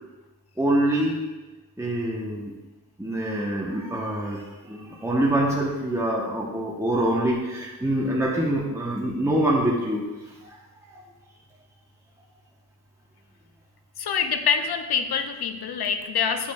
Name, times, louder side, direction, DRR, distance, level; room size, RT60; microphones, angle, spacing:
voice 1, 0.6-1.2 1.8-2.5 3.0-10.6 10.9-11.0, right 1 dB, 10° right, -3 dB, 1.0 m, -25 dB
voice 2, 14.0-16.5, left 6 dB, 85° left, 8 dB, 0.6 m, -25 dB
8.4 x 4.9 x 2.4 m, 1.2 s
cardioid pair, 55°, 37 cm